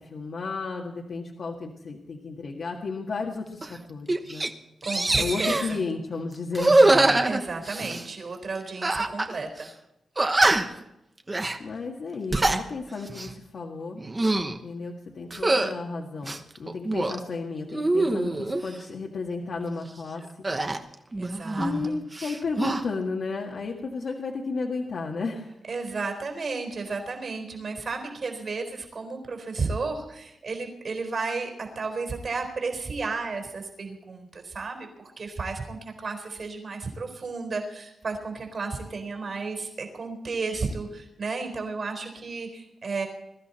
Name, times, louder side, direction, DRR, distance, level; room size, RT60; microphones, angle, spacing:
voice 1, 0.0-4.5 5.2-7.3 11.6-14.0 14.4-20.2 21.6-25.6, left 4 dB, 55° left, -1 dB, 1.8 m, -33 dB
sound 1, 3.6-3.8 4.1-4.5 4.8-5.7 6.5-8.1 8.8-9.3 9.6-9.7 10.2-10.8 11.3-11.6 12.1-12.6 13.1-13.3 14.0-14.6 15.3-15.7 16.2-17.2 17.7-18.6 20.4-21.9 22.1-22.8, right 2 dB, 20° right, 1.1 m, -23 dB
voice 2, 4.8-5.8 7.3-9.7 21.2-22.0 25.7-43.1, right 4 dB, 45° right, 4 dB, 4.1 m, -33 dB
22.0 x 14.0 x 4.3 m, 0.85 s
wide cardioid pair, 165°, 0 cm